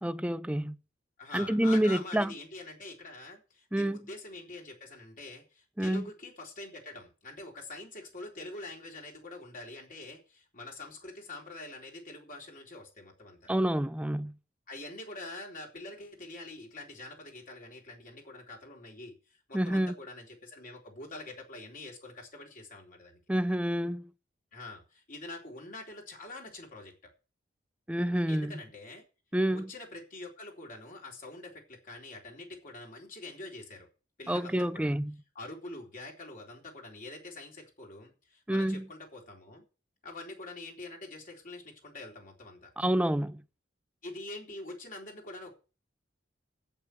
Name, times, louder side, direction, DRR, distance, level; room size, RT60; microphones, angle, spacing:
voice 1, 0.0-0.8 1.3-2.3 3.7-4.0 5.8-6.1 13.5-14.4 19.5-19.9 23.3-24.1 27.9-28.5 29.3-29.7 34.3-35.2 38.5-38.9 42.8-43.4, right 1 dB, 5° right, 0.5 m, -28 dB
voice 2, 1.2-13.5 14.7-23.2 24.5-26.9 28.3-29.0 29.5-33.9 34.2-35.0 35.3-39.7 40.0-42.7 44.0-45.5, left 2 dB, 50° left, 4.0 m, -45 dB
8.6 x 8.6 x 7.8 m
head